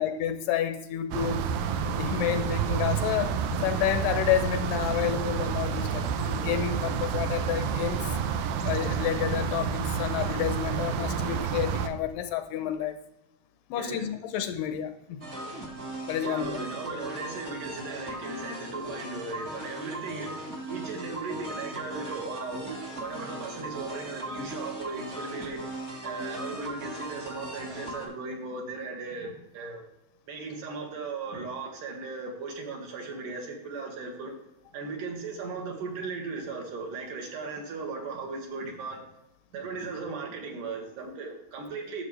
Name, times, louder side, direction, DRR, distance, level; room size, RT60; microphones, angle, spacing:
voice 1, 0.0-1.5 2.0-3.4 3.6-8.1 8.6-13.0 13.7-15.2 16.1-16.6, left 10 dB, 80° left, 9 dB, 2.2 m, -30 dB
sound 1, 1.1-11.9, right 6 dB, 90° right, 2.5 m, -29 dB
voice 2, 13.8-14.1 16.2-25.6 26.0-29.8 30.3-34.3 34.7-39.0 39.5-42.0, right 4 dB, 70° right, 1 dB, 3.1 m, -37 dB
sound 2, 15.2-28.1, right 1 dB, 40° right, 1.0 m, -38 dB
11.5 x 7.1 x 3.2 m, 0.89 s
omnidirectional pair, 4.0 m